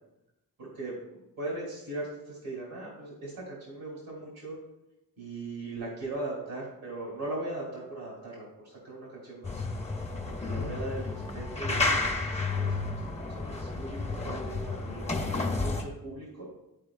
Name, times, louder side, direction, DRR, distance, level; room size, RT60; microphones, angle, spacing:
voice 1, 0.6-4.6 5.2-9.5 10.2-12.9 13.3-16.5, right 2 dB, 85° right, -4 dB, 2.6 m, -39 dB
sound 1, 9.4-15.8, left 3 dB, 20° left, 0.7 m, -31 dB
11.0 x 4.8 x 2.4 m, 0.88 s
wide cardioid pair, 140°, 35 cm